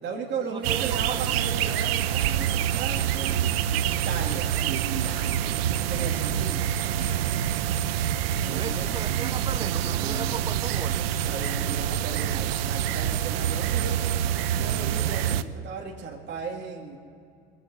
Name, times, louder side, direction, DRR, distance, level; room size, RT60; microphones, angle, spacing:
voice 1, 0.0-3.4 3.9-5.3 5.8-6.7 8.4-9.1 9.9-10.4 10.9-14.0 14.5-17.0, right 5 dB, 35° right, -2 dB, 2.2 m, -36 dB
voice 2, 0.5-1.5 8.5-11.3, right 5 dB, 15° right, 14 dB, 0.7 m, -37 dB
sound 1, 0.6-15.4, right 10 dB, 80° right, 0.7 m, -26 dB
22.5 x 7.6 x 8.3 m, 2.4 s
hypercardioid pair, 90°, 30 cm